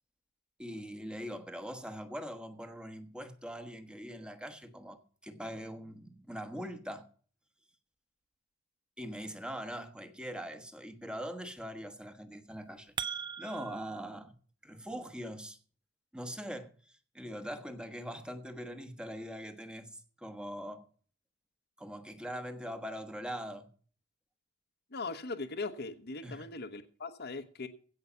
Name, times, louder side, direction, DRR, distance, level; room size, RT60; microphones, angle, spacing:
voice 1, 0.6-7.1 9.0-12.9 13.4-14.4 14.6-15.6 16.1-20.9 21.8-23.7 26.2-26.5, equal, 5° right, 1.3 m, -42 dB
sound 1, 12.5-14.0, right 6 dB, 20° right, 0.5 m, -39 dB
voice 2, 24.9-27.7, left 3 dB, 50° left, 1.0 m, -39 dB
16.0 x 5.7 x 6.9 m
head